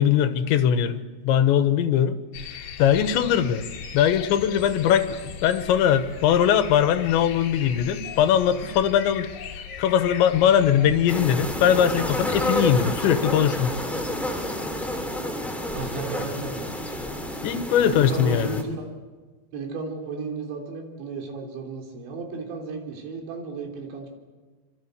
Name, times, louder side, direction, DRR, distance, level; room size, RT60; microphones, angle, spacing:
voice 1, 0.0-2.2 2.8-3.6 3.9-9.3 9.8-13.8 17.4-18.6, left 9 dB, 90° left, 10 dB, 3.5 m, -21 dB
sound 1, 2.3-11.3, left 7 dB, 70° left, 3.9 m, -38 dB
sound 2, 11.1-18.6, left 1 dB, ahead, 2.0 m, -29 dB
voice 2, 15.7-16.7 17.9-18.9 19.5-24.1, right 4 dB, 85° right, 2 dB, 5.8 m, -33 dB
25.5 x 25.0 x 8.2 m, 1.4 s
omnidirectional pair, 5.1 m